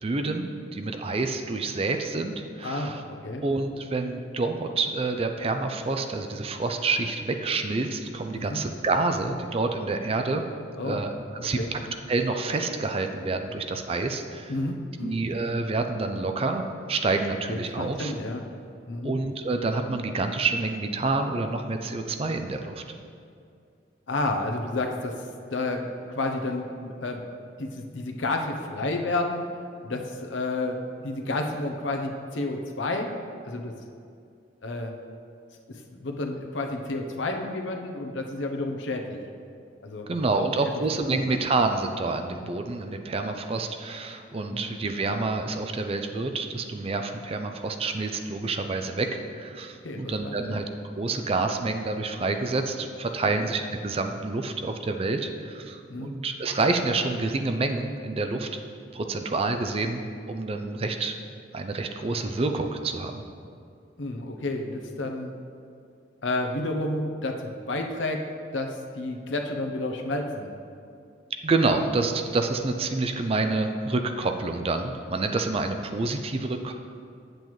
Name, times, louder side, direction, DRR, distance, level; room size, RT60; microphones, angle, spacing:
voice 1, 0.0-3.0 3.4-10.4 10.8-11.6 12.1-14.5 15.0-16.6 16.9-18.1 19.0-22.8 40.1-50.7 51.0-58.5 58.9-60.0 60.3-61.1 61.5-63.2 71.4-76.7, right 3 dB, 30° right, 6 dB, 0.4 m, -28 dB
voice 2, 2.6-3.4 8.3-8.6 10.8-11.0 11.6-11.7 14.5-15.2 17.5-18.4 18.9-19.1 24.1-27.2 27.6-29.4 29.8-33.1 33.4-33.7 34.6-34.9 35.7-39.2 39.8-40.1 40.4-40.8 41.1-41.3 44.5-44.6 49.8-50.6 51.1-51.2 53.3-53.5 55.9-56.1 64.0-65.3 66.2-68.2 68.5-70.5 71.6-71.7, left 2 dB, 85° left, 3 dB, 0.8 m, -31 dB
8.7 x 7.8 x 3.1 m, 2.4 s
head